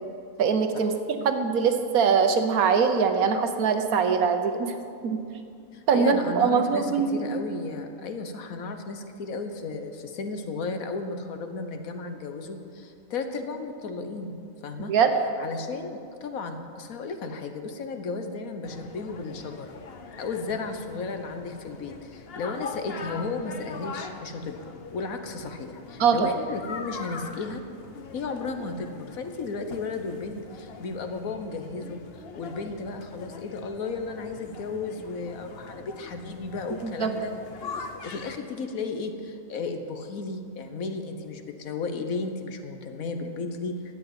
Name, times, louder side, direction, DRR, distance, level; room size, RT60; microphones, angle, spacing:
voice 1, 0.4-0.9 1.2-4.7 5.0-5.2 5.9-7.2 14.9-15.2 26.0-26.3 36.8-37.1, right 6 dB, 90° right, 7 dB, 1.5 m, -22 dB
voice 2, 5.7-14.4 14.6-14.9 15.4-19.7 20.2-24.6 24.9-27.6 28.1-32.0 32.4-37.3 38.0-43.8, left 4 dB, 80° left, 7 dB, 1.4 m, -34 dB
sound 1, 18.6-38.4, left 5 dB, 50° left, 1.0 m, -42 dB
12.5 x 8.3 x 8.7 m, 2.5 s
omnidirectional pair, 1.5 m